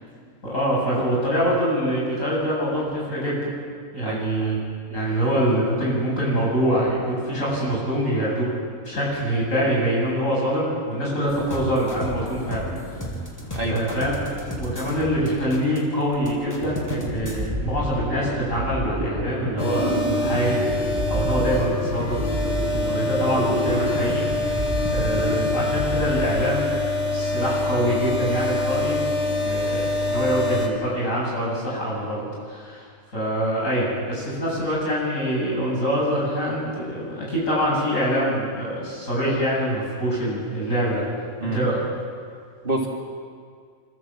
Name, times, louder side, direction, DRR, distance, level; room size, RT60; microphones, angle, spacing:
voice 1, 0.4-3.5 3.9-4.6 4.9-8.5 8.8-13.0 13.7-14.1 14.5-20.6 21.1-22.2 22.6-24.6 24.9-26.7 27.1-29.0 29.4-32.9 33.1-41.0 41.4-41.8, equal, 75° left, -5 dB, 8.5 m, -25 dB
sound 1, 11.3-17.5, equal, 15° left, 2.6 m, -35 dB
voice 2, 13.5-13.9 41.4-41.6 42.6-42.9, right 1 dB, 40° right, -1 dB, 2.8 m, -26 dB
sound 2, 16.5-26.9, right 1 dB, 10° right, 4.6 m, -29 dB
sound 3, 19.6-30.7, left 2 dB, 45° left, 2.9 m, -25 dB
26.0 x 15.0 x 7.6 m, 2.1 s
omnidirectional pair, 1.4 m